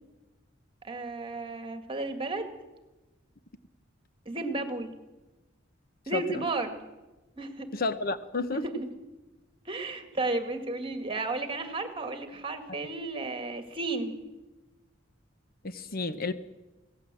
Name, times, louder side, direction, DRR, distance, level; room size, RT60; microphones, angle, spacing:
voice 1, 0.8-2.5 4.3-4.9 6.1-6.8 7.4-7.7 8.5-8.9 9.7-14.2, right 2 dB, 30° right, 7 dB, 2.2 m, -33 dB
voice 2, 6.1-6.4 7.7-8.6 15.6-16.3, left 3 dB, 50° left, 11 dB, 1.0 m, -31 dB
24.0 x 17.0 x 7.7 m, 1.1 s
head